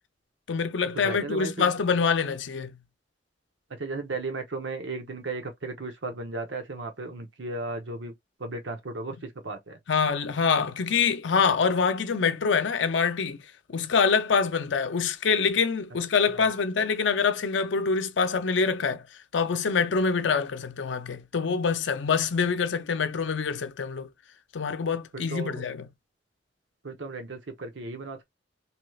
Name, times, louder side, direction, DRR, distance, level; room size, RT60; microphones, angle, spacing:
voice 1, 0.5-2.7 9.1-9.3 9.9-13.4 13.7-24.1 24.5-25.9, left 5 dB, 85° left, 0.5 m, -25 dB
voice 2, 1.0-1.7 3.8-8.1 8.4-9.1 9.4-9.8 25.3-25.6 26.8-28.2, right 3 dB, 90° right, 0.9 m, -35 dB
2.9 x 2.3 x 3.1 m
head